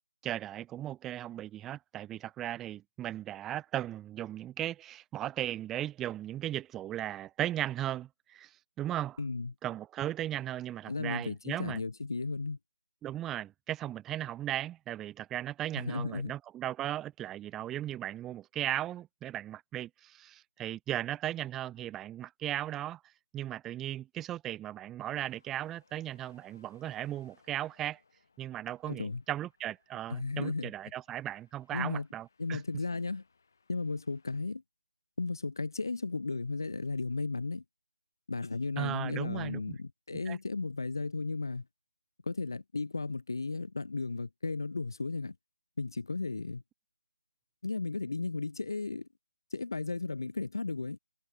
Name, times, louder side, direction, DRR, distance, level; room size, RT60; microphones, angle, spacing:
voice 1, 0.2-9.2 9.6-11.8 13.0-23.0 23.3-28.0 28.4-32.6 38.8-39.8 40.3-40.4, right 12 dB, 5° right, 0.4 m, -37 dB
voice 2, 9.2-9.5 10.9-12.6 15.7-16.3 28.9-29.2 30.1-30.7 31.7-32.1 32.4-33.2 33.7-34.6 35.2-37.6 38.3-41.6 42.3-45.4 45.8-46.6 47.6-49.1 49.5-51.0, left 3 dB, 75° left, 0.5 m, -35 dB
sound 1, 25.2-34.4, left 4 dB, 50° left, 7.2 m, -69 dB
figure-of-eight pair, 170°, 2 cm